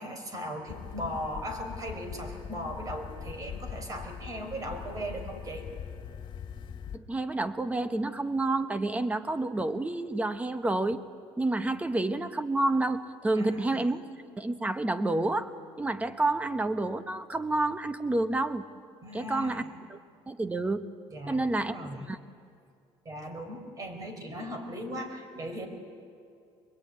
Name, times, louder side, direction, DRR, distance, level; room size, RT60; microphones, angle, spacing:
voice 1, 0.0-5.6 13.3-13.8 19.0-19.7 21.1-22.1 23.0-25.7, equal, 35° right, 5 dB, 5.1 m, -38 dB
sound 1, 0.7-7.0, left 8 dB, 50° left, 2.1 m, -42 dB
voice 2, 6.9-11.0 11.4-14.0 14.4-15.5 15.8-18.7 19.1-19.6 19.9-20.0 20.3-20.9 21.3-22.2, right 2 dB, 15° right, 10 dB, 1.2 m, -29 dB
24.5 x 21.5 x 9.7 m, 2.4 s
cardioid pair, 115°, 11 cm